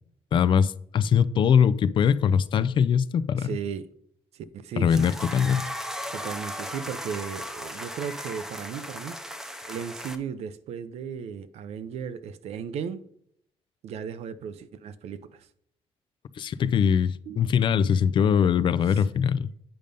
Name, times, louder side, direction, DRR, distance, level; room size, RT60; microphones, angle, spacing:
voice 1, 0.3-3.6 4.8-5.7 16.4-19.5, left 7 dB, 50° left, 0.4 m, -22 dB
voice 2, 3.4-3.9 4.3-5.1 6.1-13.1 13.8-15.5 17.3-17.5 18.9-19.0, right 7 dB, 80° right, 0.7 m, -36 dB
sound 1, 4.9-10.2, equal, 5° right, 0.7 m, -36 dB
9.0 x 5.3 x 5.2 m
cardioid pair, 150°, 11 cm